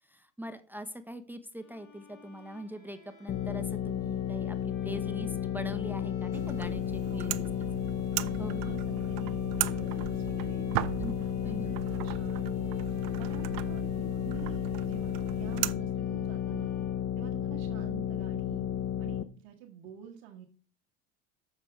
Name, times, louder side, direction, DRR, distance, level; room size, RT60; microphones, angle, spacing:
voice 1, 0.1-7.5 8.4-8.6 11.0-11.1 11.4-11.8, equal, 5° right, 10 dB, 0.8 m, -42 dB
Bowed string instrument, 1.6-17.7, left 4 dB, 50° left, 2.7 m, -55 dB
sound 1, 3.3-19.2, left 10 dB, 35° left, 0.7 m, -33 dB
sound 2, 6.3-15.7, right 16 dB, 60° right, 0.6 m, -38 dB
voice 2, 8.1-10.7 11.4-12.8 13.2-13.8 14.2-16.7 17.1-18.7 19.0-20.5, right 10 dB, 85° right, 0 dB, 1.6 m, -48 dB
7.1 x 6.5 x 4.6 m, 0.39 s
supercardioid pair, 95°, 37 cm